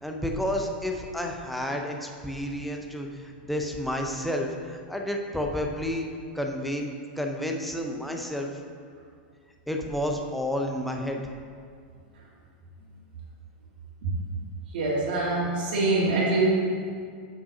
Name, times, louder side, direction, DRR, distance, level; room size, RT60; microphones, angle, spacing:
voice 1, 0.0-6.1 6.3-6.9 7.2-8.6 9.7-11.2, left 1 dB, ahead, 1 dB, 0.6 m, -30 dB
voice 2, 14.7-16.5, right 3 dB, 75° right, -7 dB, 2.1 m, -24 dB
5.7 x 5.1 x 6.5 m, 2.2 s
supercardioid pair, 150°, 5 cm